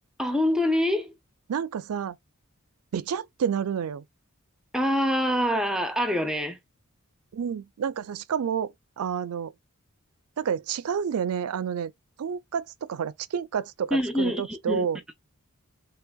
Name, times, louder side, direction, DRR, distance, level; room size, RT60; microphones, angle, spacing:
voice 1, 0.2-1.1 4.7-6.6 13.9-14.9, equal, 5° right, 0.5 m, -25 dB
voice 2, 1.5-2.2 2.9-4.0 7.3-9.5 10.4-11.9 12.2-15.0, right 7 dB, 80° right, 0.4 m, -29 dB
3.4 x 3.3 x 2.3 m
head